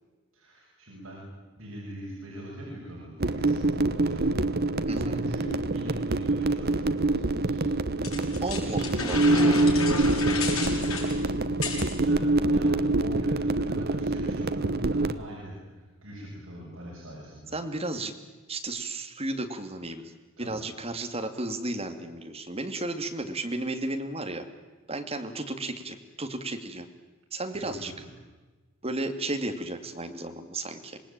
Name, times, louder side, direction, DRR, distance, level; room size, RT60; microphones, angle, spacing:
voice 1, 0.3-1.2 1.6-7.7 9.1-11.2 12.0-17.6 20.4-20.6 27.5-28.1, equal, 65° right, -5 dB, 7.4 m, -42 dB
sound 1, 3.2-15.2, right 2 dB, 45° right, 1.0 m, -25 dB
voice 2, 4.9-5.2 8.4-9.2 17.5-18.1 18.5-20.0 20.4-24.4 24.9-26.9 27.3-27.9 28.8-31.0, right 2 dB, 25° right, 6 dB, 2.1 m, -33 dB
sound 2, 8.0-12.0, left 4 dB, 75° left, 7.2 m, -32 dB
26.5 x 19.5 x 8.8 m, 1.2 s
head